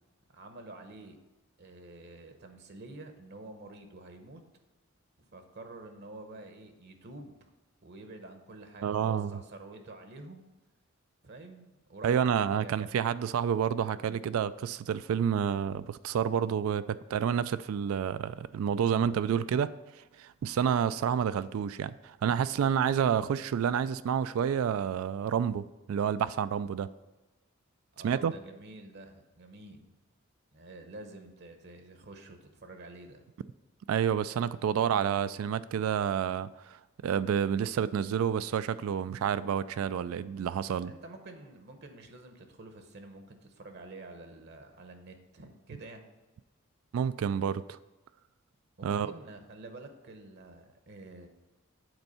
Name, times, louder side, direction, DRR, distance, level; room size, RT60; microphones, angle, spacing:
voice 1, 0.3-1.2 1.6-4.4 5.3-7.5 7.8-10.5 11.2-12.3 12.6-12.9 27.9-30.0 30.5-33.2 40.8-46.1 48.8-51.3, right 2 dB, 55° right, 6 dB, 0.8 m, -48 dB
voice 2, 8.8-9.4 12.0-19.7 20.2-26.9 28.0-28.3 33.9-40.9 46.9-47.8 48.8-49.1, right 8 dB, 80° right, 15 dB, 0.3 m, -29 dB
8.0 x 4.5 x 5.5 m, 1.1 s
head